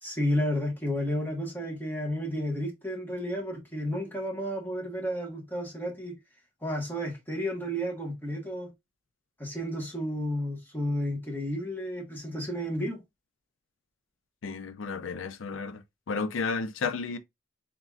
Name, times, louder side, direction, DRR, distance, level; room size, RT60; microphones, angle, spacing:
voice 1, 0.0-6.2 6.6-8.7 9.4-13.0, equal, 10° left, 1.5 m, -32 dB
voice 2, 14.4-17.2, left 4 dB, 85° left, 0.5 m, -32 dB
4.0 x 3.7 x 2.4 m
head